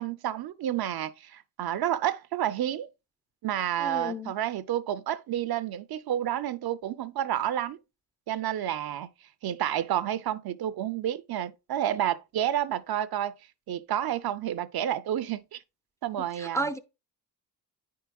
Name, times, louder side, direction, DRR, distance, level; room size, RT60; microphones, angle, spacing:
voice 1, 0.0-2.9 3.4-7.8 8.3-9.1 9.4-13.3 13.7-15.6 16.0-16.6, right 11 dB, 65° right, 0.6 m, -30 dB
voice 2, 3.8-4.3 16.4-16.8, right 2 dB, 10° left, 0.4 m, -32 dB
9.5 x 4.7 x 2.3 m
cardioid pair, 115°, 40 cm